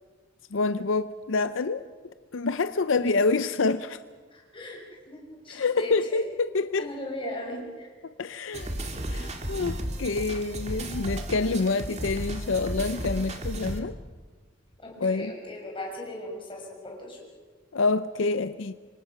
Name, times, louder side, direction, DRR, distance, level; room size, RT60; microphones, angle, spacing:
voice 1, 0.5-1.8 2.3-4.0 5.5-6.8 8.0-8.7 9.1-14.0 15.0-15.3 17.7-18.7, left 3 dB, 75° left, 0.6 m, -27 dB
voice 2, 4.3-4.8 5.1-6.3 6.8-7.9 11.5-11.6 14.8-17.3, left 1 dB, 25° left, 6.0 m, -38 dB
sound 1, 8.5-13.8, right 1 dB, 35° right, 2.2 m, -34 dB
26.5 x 25.0 x 5.8 m
head